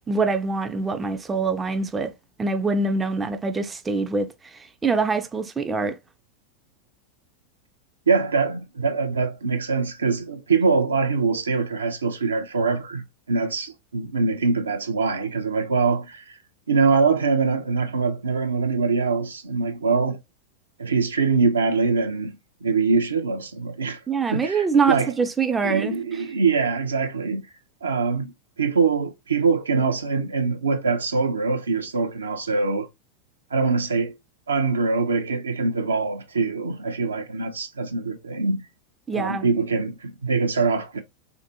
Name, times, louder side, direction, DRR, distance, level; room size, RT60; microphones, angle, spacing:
voice 1, 0.1-2.1 2.4-6.0 24.1-26.2 39.1-39.5, right 4 dB, 15° right, 0.3 m, -24 dB
voice 2, 8.1-16.3 16.7-20.2 20.8-22.4 22.6-24.0 24.3-25.1 25.6-27.5 27.8-28.3 28.6-32.9 33.5-34.1 34.5-38.7 39.1-41.0, right 4 dB, 70° right, 0.5 m, -23 dB
3.4 x 2.5 x 2.7 m
figure-of-eight pair, 90°, 0 cm